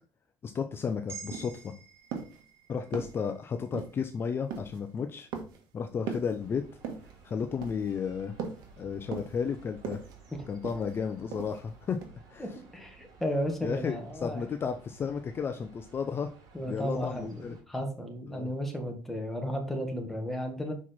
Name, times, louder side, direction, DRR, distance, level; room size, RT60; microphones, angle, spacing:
voice 1, 0.4-1.7 2.7-5.3 5.7-6.6 7.2-8.4 8.8-10.0 10.5-12.0 12.3-12.5 13.6-16.3 16.7-17.6 18.3-18.5, left 6 dB, 35° left, 7 dB, 0.5 m, -33 dB
sound 1, 0.8-0.9 1.3-1.7 2.1-2.4 2.9-3.3 3.7-4.1 4.5-4.8 5.3-5.7 6.1-6.4 6.8-7.2 7.6-8.0 8.4-8.7 9.1-9.5 9.8-10.1 10.6-11.0 11.3-11.7 12.0-12.1, right 6 dB, 80° right, 1.4 m, -39 dB
sound 2, 1.1-5.3, right 6 dB, 35° right, 1.8 m, -50 dB
sound 3, 6.4-17.6, right 5 dB, 65° right, 3.8 m, -55 dB
voice 2, 12.4-14.4 16.5-20.7, equal, 5° left, 2 dB, 1.6 m, -34 dB
6.0 x 4.5 x 4.2 m, 0.37 s
cardioid pair, 120°, 7 cm